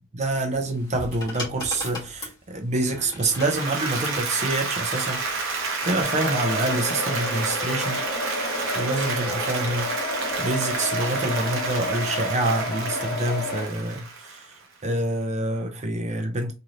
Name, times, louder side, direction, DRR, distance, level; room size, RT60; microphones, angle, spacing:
voice 1, 0.1-5.3 5.8-8.1 8.7-9.9 10.4-14.1 14.8-16.5, right 2 dB, 35° right, 0.6 m, -26 dB
sound 1, 0.5-4.2 5.3-5.6, left 1 dB, 20° left, 1.3 m, -37 dB
Applause, 3.3-14.6, right 4 dB, 65° right, 0.9 m, -30 dB
sound 2, 6.0-13.7, left 2 dB, 50° left, 1.4 m, -31 dB
3.1 x 2.7 x 2.5 m
head